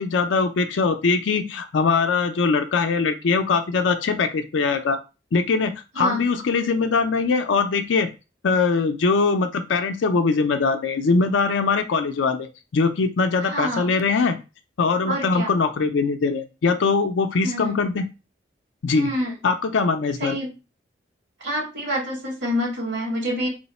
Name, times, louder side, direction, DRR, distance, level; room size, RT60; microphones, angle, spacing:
voice 1, 0.0-5.0 5.3-8.1 8.4-12.5 12.7-14.4 14.8-18.0 18.8-19.1 19.4-20.4, left 4 dB, 80° left, 7 dB, 0.4 m, -22 dB
voice 2, 13.4-13.9 15.1-15.5 17.4-17.8 18.9-19.3 20.2-20.5 21.4-23.5, equal, 75° right, -2 dB, 1.7 m, -27 dB
3.0 x 2.0 x 4.1 m, 0.29 s
head